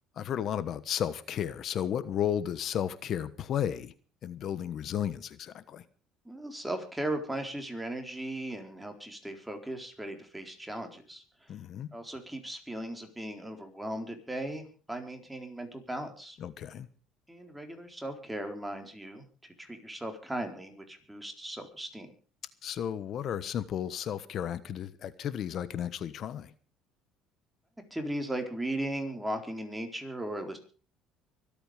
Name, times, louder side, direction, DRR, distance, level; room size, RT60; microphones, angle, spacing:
voice 1, 0.2-3.9 4.2-5.8 11.5-11.9 16.4-16.9 22.6-26.5, left 9 dB, 55° left, 1.2 m, -33 dB
voice 2, 6.3-11.2 11.9-16.4 17.3-19.2 19.6-22.1 27.9-30.6, right 1 dB, 5° right, 4.0 m, -37 dB
24.5 x 8.9 x 5.1 m
supercardioid pair, 90°, 0 cm